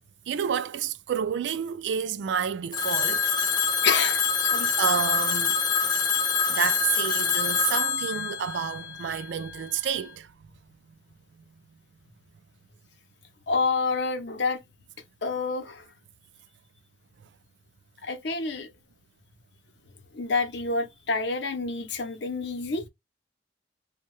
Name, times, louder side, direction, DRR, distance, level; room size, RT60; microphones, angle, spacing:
voice 1, 0.3-3.3 4.8-5.6 6.5-10.3, right 8 dB, 70° right, 0.3 m, -29 dB
Telephone, 2.7-9.5, left 6 dB, 20° left, 0.4 m, -26 dB
voice 2, 3.8-4.7 13.5-14.6 15.2-15.8 18.0-18.7 20.1-22.8, left 4 dB, 70° left, 0.6 m, -28 dB
2.6 x 2.2 x 3.0 m
head